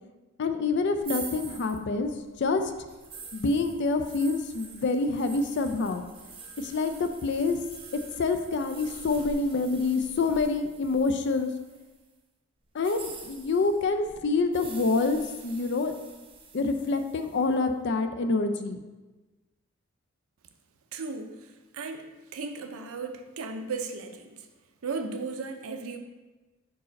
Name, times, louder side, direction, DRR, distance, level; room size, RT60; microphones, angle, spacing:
voice 1, 0.4-2.1 2.4-2.7 3.3-6.1 6.6-7.6 8.2-11.5 12.7-15.9 16.5-18.8, left 3 dB, 55° left, 8 dB, 0.4 m, -27 dB
sound 1, 1.0-12.0 12.7-17.6, right 4 dB, 25° right, 0.7 m, -46 dB
voice 2, 20.9-22.1 22.3-24.5 24.8-26.0, right 4 dB, 90° right, 6 dB, 0.6 m, -36 dB
4.6 x 4.1 x 5.2 m, 1.2 s
head